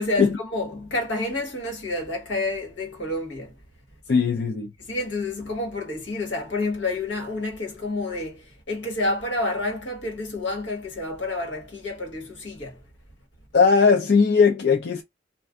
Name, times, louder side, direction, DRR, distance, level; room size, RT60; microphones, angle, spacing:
voice 1, 0.0-3.5 4.8-12.8, left 2 dB, 85° left, 1.3 m, -29 dB
voice 2, 4.1-4.7 13.5-15.0, left 5 dB, 60° left, 0.5 m, -18 dB
2.4 x 2.3 x 3.5 m
head